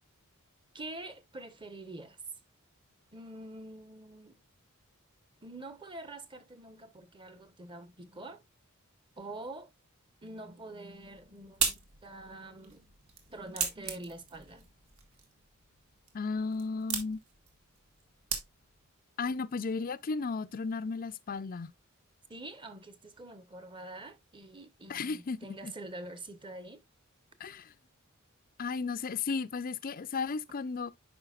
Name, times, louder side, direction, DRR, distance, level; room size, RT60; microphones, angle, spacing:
voice 1, 0.7-2.2 3.1-4.4 5.4-8.4 9.2-9.7 10.2-12.9 13.3-14.7 22.3-26.8, right 2 dB, 25° right, 1.0 m, -46 dB
sound 1, 10.9-18.9, right 6 dB, 85° right, 1.9 m, -39 dB
voice 2, 16.1-17.2 19.2-21.7 24.9-25.4 25.6-25.7 27.4-27.7 28.6-30.9, left 4 dB, 40° left, 0.5 m, -34 dB
9.8 x 5.6 x 2.4 m
head